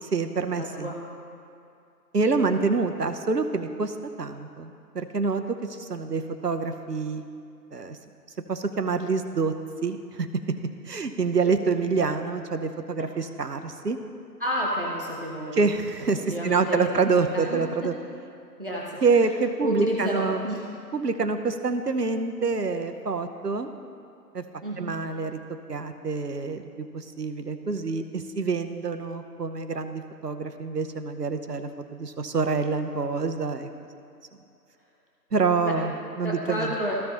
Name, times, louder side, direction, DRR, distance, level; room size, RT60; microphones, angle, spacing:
voice 1, 0.0-0.9 2.1-5.4 5.7-7.2 7.7-8.0 8.5-9.5 9.8-10.3 10.9-14.0 15.5-17.9 19.0-20.4 20.9-23.7 24.3-24.4 24.8-25.3 25.7-33.7 35.3-36.7, right 4 dB, 70° right, 8 dB, 0.9 m, -26 dB
voice 2, 0.5-1.0 14.4-15.7 16.3-17.6 18.6-19.2 19.6-20.6 24.6-24.9 35.6-35.7 36.2-37.1, equal, 35° right, -3 dB, 1.0 m, -30 dB
15.5 x 5.4 x 2.9 m, 2.5 s
figure-of-eight pair, 170°, 50 cm